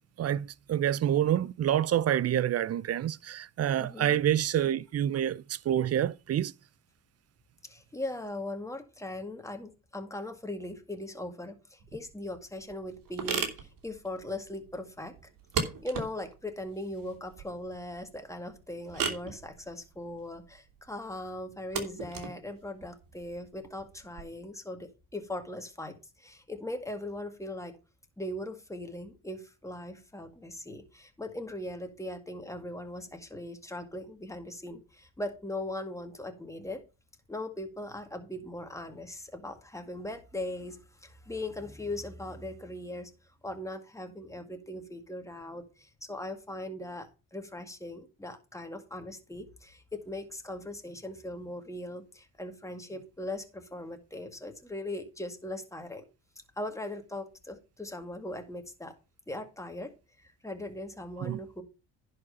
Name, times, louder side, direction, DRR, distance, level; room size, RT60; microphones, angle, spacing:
voice 1, 0.2-6.5 61.2-61.4, right 10 dB, 45° right, 0.6 m, -27 dB
voice 2, 3.8-4.2 7.6-15.2 15.6-27.8 28.2-36.8 37.3-43.1 43.4-56.0 56.6-58.9 59.3-59.9 60.2-61.6, left 1 dB, 10° left, 2.1 m, -39 dB
sound 1, 11.8-24.2, right 6 dB, 65° right, 2.7 m, -39 dB
10.5 x 5.0 x 5.5 m
cardioid pair, 85°, 36 cm